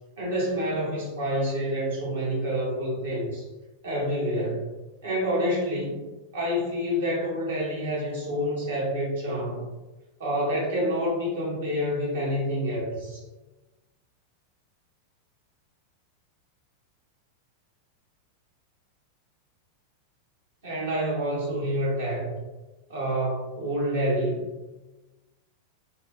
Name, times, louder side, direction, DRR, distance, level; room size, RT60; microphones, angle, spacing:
voice 1, 0.2-3.5 3.8-4.7 5.0-6.1 6.3-9.6 10.2-13.2 20.6-22.3 22.9-24.4, equal, 65° right, -5 dB, 1.0 m, -28 dB
2.8 x 2.3 x 2.4 m, 1.1 s
figure-of-eight pair, 90°, 0 cm